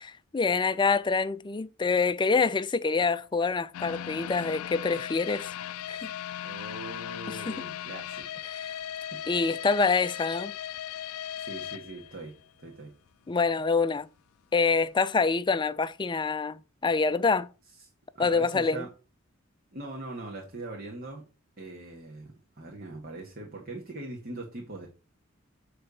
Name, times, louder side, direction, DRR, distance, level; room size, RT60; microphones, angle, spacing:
voice 1, 0.0-5.5 5.9-6.1 7.3-7.5 8.4-8.8 9.3-10.5 13.3-14.1 14.5-17.5 18.2-18.8, left 4 dB, 20° left, 0.4 m, -26 dB
sound 1, 3.7-12.7 13.1-13.2 13.7-13.8, left 10 dB, 85° left, 0.3 m, -38 dB
voice 2, 6.4-8.3 8.6-9.2 11.4-12.3 12.6-12.9 17.8-17.9 18.1-18.9 19.7-21.2 21.6-24.9, right 2 dB, 45° right, 1.7 m, -41 dB
9.1 x 3.4 x 6.8 m
head